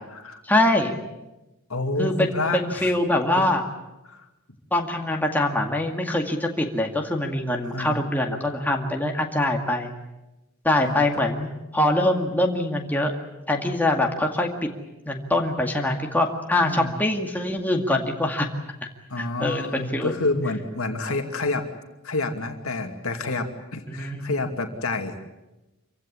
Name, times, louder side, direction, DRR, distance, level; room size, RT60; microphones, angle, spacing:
voice 1, 0.4-1.0 2.0-3.7 4.7-9.9 10.6-13.1 13.5-14.7 15.1-18.5 19.2-20.1 23.9-24.3, left 1 dB, 10° left, 1 dB, 2.1 m, -24 dB
voice 2, 1.7-2.9 3.4-3.5 4.1-4.3 7.7-8.0 10.8-11.0 16.6-16.9 19.1-21.7 22.0-25.2, left 2 dB, 70° left, 5 dB, 2.5 m, -28 dB
26.5 x 16.0 x 9.9 m, 1.0 s
head